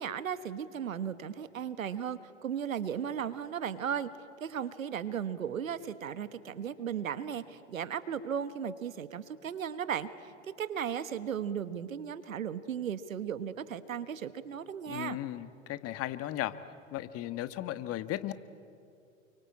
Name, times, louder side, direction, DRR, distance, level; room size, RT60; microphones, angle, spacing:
voice 1, 0.0-4.1 4.4-10.3 10.6-15.2, right 8 dB, 85° right, 13 dB, 1.4 m, -36 dB
voice 2, 14.9-16.5 16.9-18.3, left 14 dB, 35° left, 12 dB, 1.4 m, -36 dB
28.5 x 24.0 x 8.7 m, 2.5 s
hypercardioid pair, 105°, 39 cm